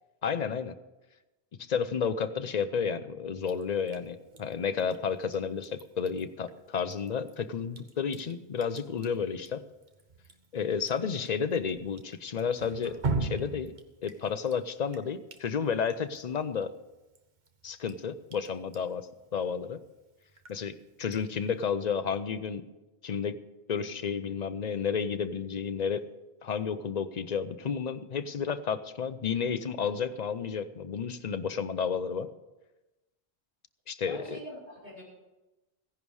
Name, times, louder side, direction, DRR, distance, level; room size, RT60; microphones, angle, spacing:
voice 1, 0.2-0.7 1.7-9.6 10.5-13.7 14.0-16.7 17.6-19.1 19.3-19.8 20.5-22.6 23.0-23.4 23.7-26.0 26.4-32.3 33.9-34.4, left 6 dB, 45° left, 12 dB, 0.7 m, -31 dB
Drip, 3.4-21.7, right 3 dB, 45° right, 1.2 m, -43 dB
voice 2, 34.0-35.0, equal, 85° right, -6 dB, 6.2 m, -44 dB
16.0 x 10.5 x 4.8 m, 1.0 s
omnidirectional pair, 1.1 m